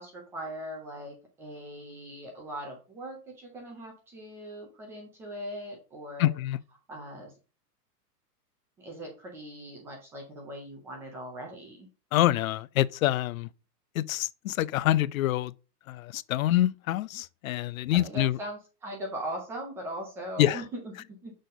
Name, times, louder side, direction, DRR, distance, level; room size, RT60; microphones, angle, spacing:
voice 1, 0.0-6.3 6.9-7.3 8.8-11.9 17.9-21.3, right 1 dB, 5° right, 0.4 m, -40 dB
voice 2, 6.2-6.6 12.1-13.5 13.9-15.5 15.9-18.4 20.4-20.6, left 14 dB, 60° left, 0.5 m, -26 dB
6.5 x 4.0 x 5.0 m
hypercardioid pair, 145°, 49 cm